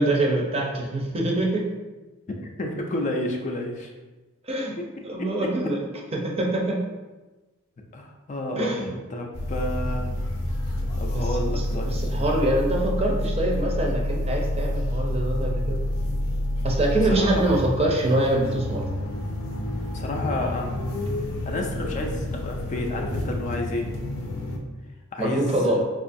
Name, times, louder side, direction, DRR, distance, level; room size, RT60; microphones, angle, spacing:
voice 1, 0.0-1.7 4.4-4.7 5.0-5.9 6.1-6.8 8.6-9.0 11.1-15.8 16.6-18.9 25.2-25.8, right 1 dB, 30° right, -1 dB, 0.5 m, -25 dB
voice 2, 2.4-3.9 5.2-5.3 7.9-10.1 11.0-11.9 17.0-17.4 19.9-20.8 21.4-23.9 25.1-25.8, left 1 dB, 35° left, 2 dB, 0.4 m, -30 dB
sound 1, 9.3-24.6, left 1 dB, 85° left, 0.5 m, -28 dB
4.4 x 2.4 x 2.5 m, 1.1 s
head